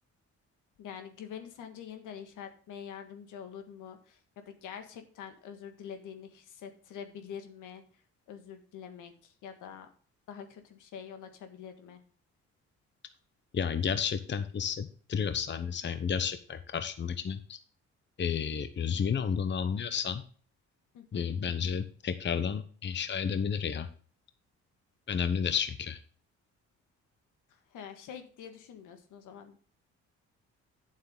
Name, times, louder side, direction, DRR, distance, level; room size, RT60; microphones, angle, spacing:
voice 1, 0.8-7.8 8.3-9.9 10.3-12.0 20.9-21.3 27.7-29.6, left 8 dB, 85° left, 7 dB, 1.7 m, -45 dB
voice 2, 13.5-17.6 18.2-20.2 21.1-23.9 25.1-26.0, left 7 dB, 40° left, 10 dB, 0.9 m, -31 dB
9.2 x 7.6 x 3.7 m, 0.42 s
cardioid pair, 90°, 30 cm